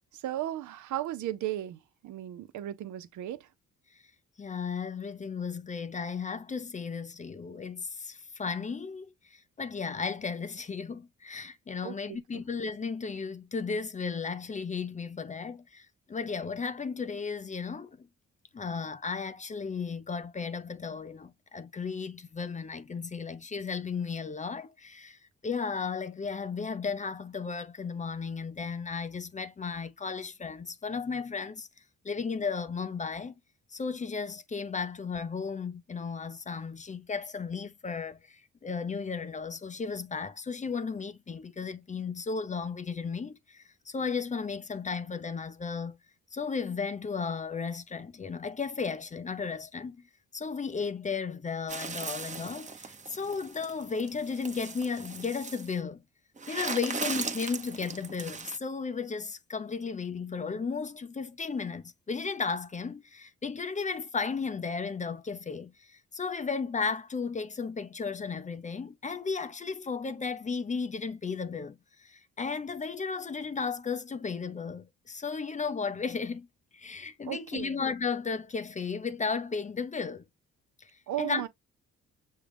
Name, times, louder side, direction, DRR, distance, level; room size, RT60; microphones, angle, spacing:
voice 1, 0.1-3.5 11.8-12.4 77.2-77.8 81.1-81.5, right 13 dB, 75° right, 0.7 m, -36 dB
voice 2, 4.4-18.1 18.5-31.7 32.0-33.3 33.7-46.0 46.3-50.0 50.3-56.0 56.5-76.5 76.7-80.2 80.8-80.9 81.2-81.4, left 5 dB, 25° left, 0.5 m, -34 dB
sound 1, 51.7-55.7 56.4-58.6, right 4 dB, 25° right, 0.8 m, -38 dB
6.5 x 2.3 x 3.3 m
cardioid pair, 90°, 30 cm